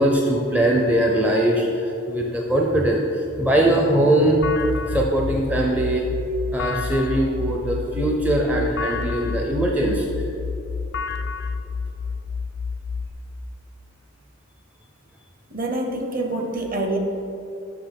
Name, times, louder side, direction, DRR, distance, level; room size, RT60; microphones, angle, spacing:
voice 1, 0.0-4.4 4.9-6.0 6.5-10.1, right 1 dB, 5° right, -1 dB, 0.4 m, -21 dB
sound 1, 4.4-13.1, left 5 dB, 55° left, 0.4 m, -29 dB
voice 2, 15.5-17.0, right 2 dB, 40° right, 3 dB, 0.8 m, -26 dB
6.0 x 5.8 x 5.2 m, 2.9 s
head